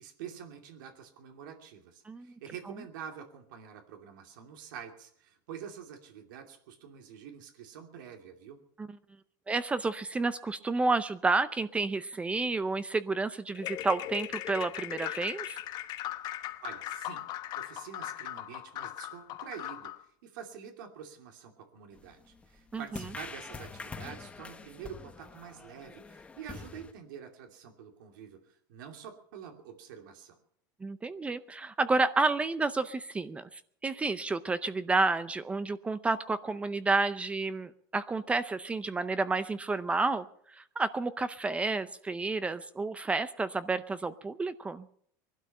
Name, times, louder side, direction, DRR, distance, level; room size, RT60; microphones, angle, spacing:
voice 1, 0.0-8.6 16.6-17.3 17.6-19.9 20.2-30.4, right 8 dB, 85° right, 4 dB, 2.7 m, -47 dB
voice 2, 9.5-15.6 22.7-22.8 30.8-40.3 40.5-44.9, right 3 dB, 10° right, 14 dB, 0.6 m, -30 dB
sound 1, 13.5-20.0, left 13 dB, 40° left, 1.0 m, -39 dB
sound 2, 21.9-26.9, left 4 dB, 10° left, 1.0 m, -45 dB
21.0 x 12.0 x 5.5 m, 0.64 s
supercardioid pair, 150°, 10 cm